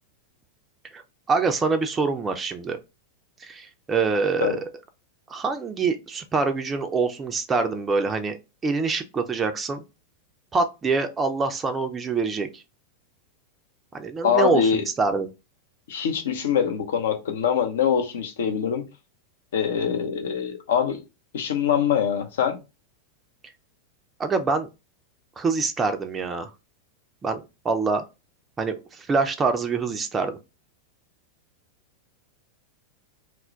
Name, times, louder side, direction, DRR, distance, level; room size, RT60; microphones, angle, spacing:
voice 1, 1.3-2.8 3.4-4.6 5.3-8.4 8.6-9.8 10.5-12.6 13.9-15.3 24.2-24.7 25.4-26.5 27.2-28.0 28.6-30.4, right 4 dB, 20° right, 0.4 m, -25 dB
voice 2, 14.2-14.8 15.9-18.9 19.5-21.0 21.3-22.6, left 7 dB, 60° left, 0.6 m, -23 dB
2.2 x 2.0 x 3.7 m
figure-of-eight pair, 90°, 0 cm